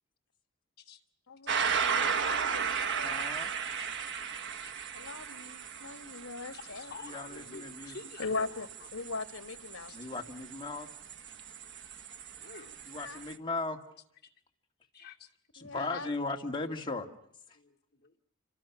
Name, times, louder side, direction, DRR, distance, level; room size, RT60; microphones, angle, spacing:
voice 1, 1.3-3.1 4.9-6.9 8.2-10.0 12.9-13.2 15.6-16.1, left 3 dB, 80° left, 11 dB, 1.3 m, -40 dB
sound 1, 1.5-13.3, right 6 dB, 60° right, 1.2 m, -36 dB
voice 2, 3.0-3.5 7.0-8.0 9.9-10.9 12.9-13.8 15.5-17.1 17.5-17.6, left 3 dB, 25° left, 2 dB, 2.3 m, -37 dB
voice 3, 6.5-8.9 9.9-10.1 12.4-12.8 14.9-15.3 17.5-18.2, left 4 dB, 50° left, 2 dB, 2.5 m, -50 dB
29.5 x 25.5 x 6.1 m, 0.70 s
head